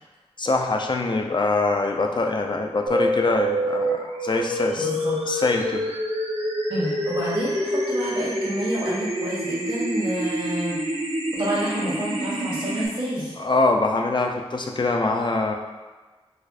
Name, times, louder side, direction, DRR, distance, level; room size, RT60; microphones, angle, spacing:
voice 1, 0.4-4.9 5.3-5.8 13.4-15.5, left 3 dB, 45° left, 2 dB, 0.4 m, -23 dB
sound 1, 2.9-12.9, equal, 80° right, 0.6 m, -27 dB
voice 2, 4.8-5.1 6.7-10.8 11.3-13.3, right 1 dB, 50° right, -7 dB, 1.5 m, -29 dB
4.2 x 2.5 x 2.4 m, 1.3 s
wide cardioid pair, 55°, 11 cm